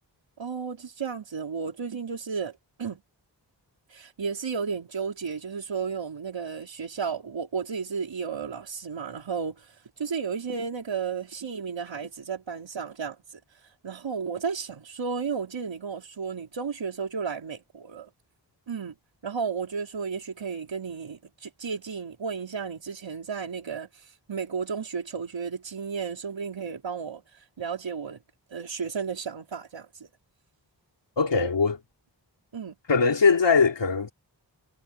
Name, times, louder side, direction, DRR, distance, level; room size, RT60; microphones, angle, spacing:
voice 1, 0.4-3.0 3.9-9.7 10.0-13.2 13.8-18.1 18.7-18.9 19.2-23.9 24.3-27.2 27.6-28.2 28.5-29.9 32.5-32.8, right 6 dB, 90° right, 4.9 m, -33 dB
voice 2, 31.2-31.8 32.9-34.1, left 5 dB, 75° left, 3.2 m, -21 dB
wide cardioid pair, 105°, 44 cm